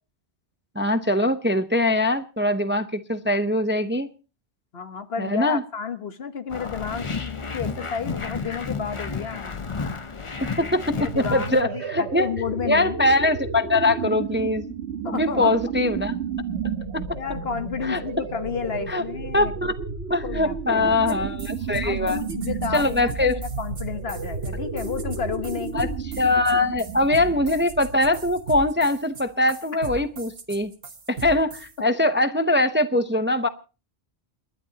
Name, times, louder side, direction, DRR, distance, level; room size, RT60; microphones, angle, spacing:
voice 1, 0.8-4.1 5.2-5.6 10.4-12.3 12.7-14.6 15.1-16.2 16.6-17.0 17.8-18.0 18.9-19.0 19.3-19.7 20.1-22.2 22.7-23.4 25.7-25.9 26.2-30.7 31.1-33.5, left 1 dB, 15° right, 10 dB, 0.6 m, -22 dB
voice 2, 4.7-9.5 10.6-13.0 15.0-15.6 17.2-19.5 20.2-21.3 21.8-25.8, left 6 dB, 65° left, 9 dB, 1.4 m, -32 dB
sound 1, 6.5-11.6, left 4 dB, 30° left, 0.8 m, -32 dB
sound 2, 11.0-28.5, right 5 dB, 80° right, 1.4 m, -32 dB
sound 3, 21.1-21.2 21.4-31.7, right 3 dB, 60° right, 1.6 m, -38 dB
29.5 x 11.0 x 2.8 m, 0.33 s
omnidirectional pair, 1.1 m